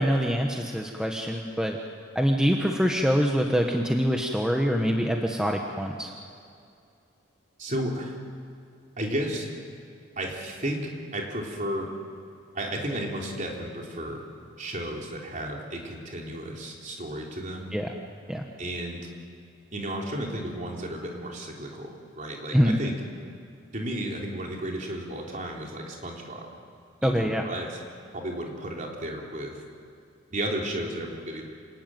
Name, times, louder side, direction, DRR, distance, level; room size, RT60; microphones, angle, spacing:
voice 1, 0.0-1.8 2.1-6.1 17.7-17.9 18.3-18.4 22.5-22.8 27.0-27.4, equal, 5° right, 1 dB, 1.1 m, -24 dB
voice 2, 7.6-8.1 9.0-9.5 10.2-11.9 12.5-14.2 14.6-17.7 18.6-19.1 19.7-23.0 23.7-26.5 27.0-27.8 28.1-29.6 30.3-31.5, right 1 dB, 35° right, -1 dB, 3.8 m, -33 dB
27.5 x 19.0 x 9.2 m, 2.5 s
head